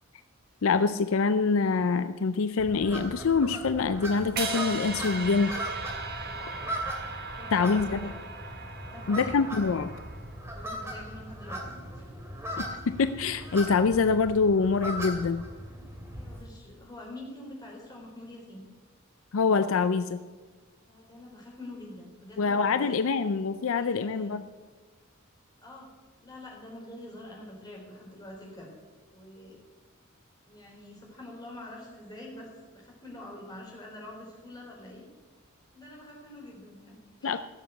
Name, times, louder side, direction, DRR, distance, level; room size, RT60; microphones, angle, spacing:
voice 1, 0.6-5.6 7.5-8.1 9.1-10.0 12.6-15.4 19.3-20.2 22.4-24.4 37.2-37.4, left 4 dB, 65° left, 11 dB, 0.5 m, -25 dB
sound 1, 2.6-16.4, equal, 10° right, 2.6 m, -39 dB
sound 2, 4.4-10.5, right 4 dB, 45° right, 1.5 m, -38 dB
voice 2, 6.2-6.8 7.3-8.1 8.8-9.4 10.5-11.6 11.9-12.1 16.1-18.6 20.9-23.0 23.7-24.4 25.6-25.9 26.2-28.7 29.1-29.6 30.5-35.0 35.7-37.4, left 1 dB, 20° left, -3 dB, 4.1 m, -45 dB
15.5 x 7.4 x 7.9 m, 1.4 s
head